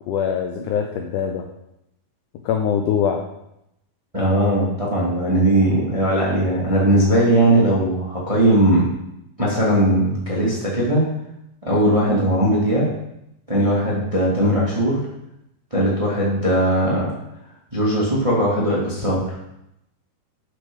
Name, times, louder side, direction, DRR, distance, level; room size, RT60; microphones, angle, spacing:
voice 1, 0.1-1.5 2.4-3.2, left 8 dB, 90° left, 4 dB, 1.8 m, -22 dB
voice 2, 4.1-8.8 9.4-11.0 11.6-12.9 13.5-15.0 15.7-17.1 17.7-19.4, right 1 dB, 20° right, -5 dB, 0.9 m, -19 dB
8.0 x 6.1 x 5.3 m, 0.84 s
omnidirectional pair, 4.5 m